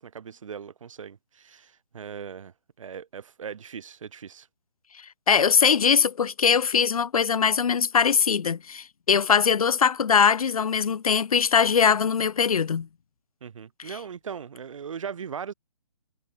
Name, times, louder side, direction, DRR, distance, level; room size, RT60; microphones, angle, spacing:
voice 1, 0.0-4.5 13.4-15.5, right 7 dB, 60° right, 2.6 m, -39 dB
voice 2, 5.3-12.9, left 6 dB, 75° left, 0.7 m, -21 dB
hypercardioid pair, 145°, 19 cm